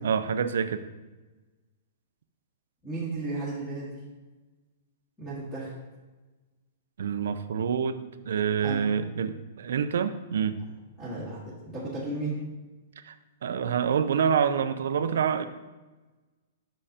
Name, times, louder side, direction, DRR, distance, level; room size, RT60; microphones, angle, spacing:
voice 1, 0.0-0.8 7.0-10.6 13.0-13.1 13.4-15.5, right 7 dB, 75° right, 11 dB, 0.5 m, -27 dB
voice 2, 2.8-4.0 5.2-5.7 8.6-8.9 11.0-12.4, right 2 dB, 5° left, -9 dB, 1.5 m, -34 dB
8.7 x 6.2 x 2.8 m, 1.2 s
hypercardioid pair, 170°, 0 cm